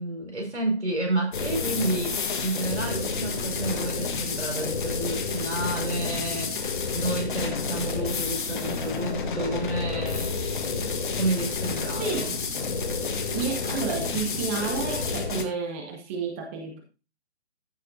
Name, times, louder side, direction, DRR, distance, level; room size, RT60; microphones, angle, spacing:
voice 1, 0.0-6.6 6.9-10.4 11.1-12.3, right 2 dB, 80° right, 4.6 m, -30 dB
sound 1, 1.3-15.4, left 4 dB, 45° left, 1.6 m, -30 dB
voice 2, 12.0-12.4 13.3-16.8, right 5 dB, 10° right, 0.7 m, -31 dB
14.0 x 6.4 x 2.6 m
figure-of-eight pair, 140°, 34 cm